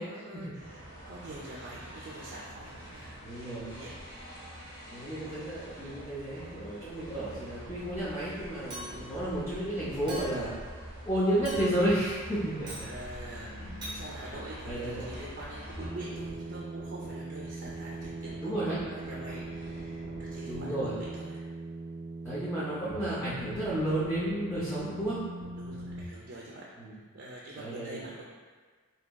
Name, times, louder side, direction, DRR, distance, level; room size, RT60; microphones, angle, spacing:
voice 1, 0.0-3.3 3.6-3.9 8.9-9.3 12.9-21.5 25.6-26.6 27.1-28.0, right 1 dB, 50° right, -5 dB, 0.4 m, -45 dB
sound 1, 0.6-15.9, equal, 65° left, 1.5 m, -45 dB
voice 2, 3.2-3.7 4.9-10.5 11.1-12.9 13.6-13.7 14.6-15.1 18.4-18.8 20.4-20.9 22.2-25.2 26.8-26.9 27.6-28.1, right 1 dB, 10° left, -11 dB, 0.5 m, -32 dB
Chink clink, 8.7-9.2 10.1-10.5 11.5-12.0 12.7-12.9 13.8-14.0, equal, 20° right, 0.8 m, -41 dB
sound 2, 15.7-26.0, right 2 dB, 35° left, 1.1 m, -40 dB
4.0 x 2.7 x 2.2 m, 1.5 s
head